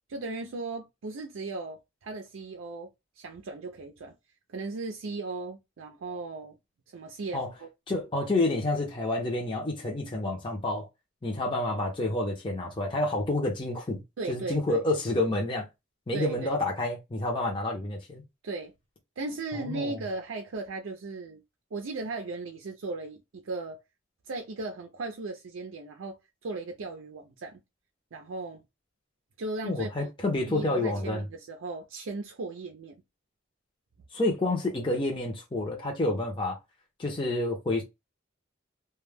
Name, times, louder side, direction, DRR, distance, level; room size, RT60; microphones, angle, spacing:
voice 1, 0.1-2.9 3.2-4.1 4.5-6.6 6.9-7.7 14.2-14.8 16.1-16.6 18.4-18.7 19.2-21.4 21.7-23.8 24.3-26.2 26.4-27.6 28.1-28.6 29.4-30.1 30.5-33.0, right 3 dB, 85° right, 0.5 m, -37 dB
voice 2, 7.9-10.9 11.2-14.0 14.3-15.7 16.1-18.2 19.5-20.0 29.6-31.2 34.1-36.6 37.0-37.8, left 2 dB, 25° left, 0.6 m, -29 dB
2.2 x 2.1 x 3.2 m
head